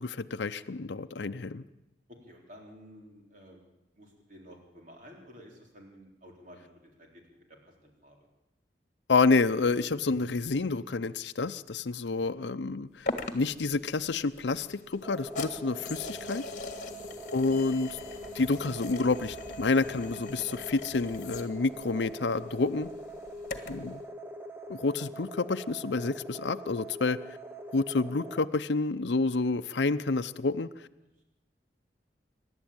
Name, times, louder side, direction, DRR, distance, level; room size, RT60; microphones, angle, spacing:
voice 1, 0.0-1.6 9.1-13.1 13.3-16.5 17.3-18.0 18.3-22.9 23.7-24.0 24.7-27.2 27.7-30.9, left 3 dB, 75° left, 9 dB, 0.6 m, -29 dB
voice 2, 2.1-3.7 3.9-8.2 12.1-12.4 16.9-17.3 23.3-23.7, equal, 45° right, 0 dB, 4.0 m, -53 dB
sound 1, 13.1-23.9, left 3 dB, 45° left, 1.7 m, -42 dB
sound 2, 15.0-28.5, right 1 dB, 10° right, 1.0 m, -43 dB
27.0 x 12.0 x 8.9 m, 0.97 s
head